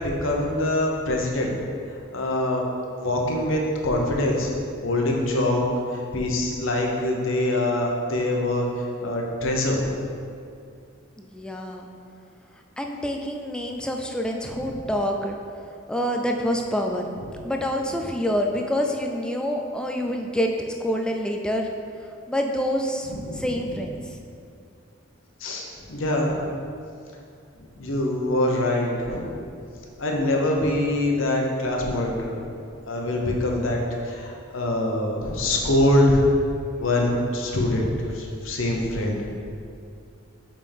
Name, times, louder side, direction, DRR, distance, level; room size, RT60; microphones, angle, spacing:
voice 1, 0.0-1.6 2.1-2.6 3.0-4.5 4.8-5.6 5.9-8.7 9.0-10.0 23.1-23.5 25.4-26.5 27.6-29.3 30.0-32.5 32.9-33.8 34.0-36.2 36.8-39.1, left 1 dB, 75° left, 0 dB, 0.9 m, -24 dB
voice 2, 11.2-11.9 12.8-15.3 15.9-17.1 17.4-20.5 20.8-21.7 22.3-23.1 23.3-24.1 39.0-39.4, equal, 5° left, 2 dB, 0.4 m, -27 dB
5.6 x 5.0 x 3.5 m, 2.4 s
head